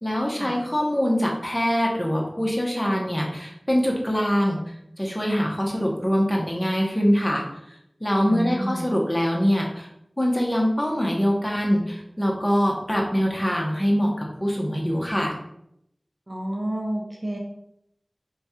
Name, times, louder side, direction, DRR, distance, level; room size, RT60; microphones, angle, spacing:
voice 1, 0.0-4.6 5.0-7.4 8.0-9.9 10.2-15.3, equal, 20° left, -1 dB, 0.9 m, -23 dB
voice 2, 8.2-8.9 16.3-17.4, right 1 dB, 55° right, 0 dB, 0.6 m, -29 dB
3.1 x 2.3 x 4.3 m, 0.77 s
wide cardioid pair, 45°, 0 cm